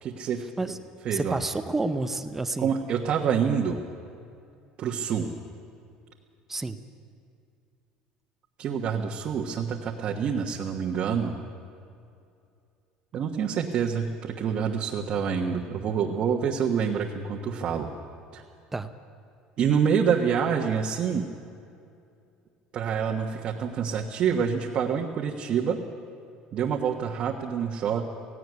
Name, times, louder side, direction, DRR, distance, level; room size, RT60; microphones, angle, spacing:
voice 1, 0.0-0.8 1.0-1.4 2.6-3.8 4.8-5.3 8.6-11.3 13.1-17.9 18.3-18.4 19.6-21.3 22.7-25.8 26.5-28.1, right 7 dB, 45° right, 0 dB, 1.3 m, -27 dB
voice 2, 1.1-2.7 6.5-6.8 18.7-18.9, right 2 dB, 10° right, 10 dB, 0.7 m, -29 dB
17.5 x 16.5 x 9.6 m, 2.5 s
cardioid pair, 135°, 3 cm